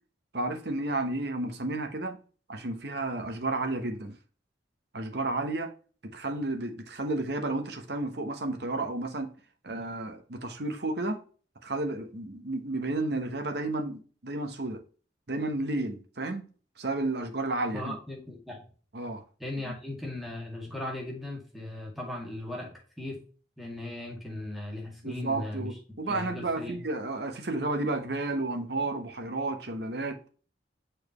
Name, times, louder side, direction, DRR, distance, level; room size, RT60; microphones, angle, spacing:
voice 1, 0.3-2.2 2.5-4.2 4.9-5.7 6.0-9.3 9.6-11.2 11.6-14.8 15.3-16.5 16.8-17.9 18.9-19.2 25.0-30.2, right 2 dB, 60° right, 1.0 m, -32 dB
voice 2, 17.7-18.6 19.4-23.2 23.6-25.8 26.1-26.8, left 1 dB, ahead, 2.2 m, -38 dB
6.8 x 4.5 x 3.1 m
head